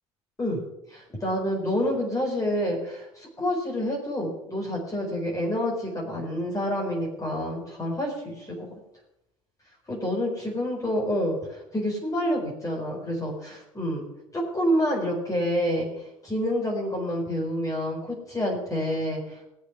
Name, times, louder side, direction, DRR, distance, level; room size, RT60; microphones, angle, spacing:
voice 1, 0.9-8.7 9.9-13.3 13.7-14.1 14.3-15.9 16.2-19.5, equal, 20° left, -1 dB, 4.8 m, -28 dB
19.5 x 6.8 x 6.2 m, 0.85 s
figure-of-eight pair, 60°, 17 cm